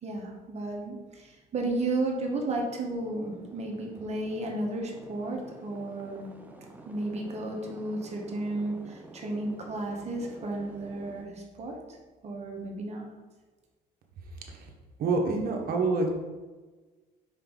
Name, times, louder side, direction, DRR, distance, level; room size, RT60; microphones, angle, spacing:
voice 1, 0.0-6.3 6.8-11.8 12.2-13.1, right 2 dB, 40° right, 0 dB, 1.3 m, -33 dB
sound 1, 2.2-11.2, right 1 dB, 10° right, 0.8 m, -49 dB
voice 2, 15.0-16.1, right 3 dB, 60° right, 2 dB, 1.3 m, -26 dB
5.4 x 5.1 x 3.9 m, 1.3 s
cardioid pair, 110°, 17 cm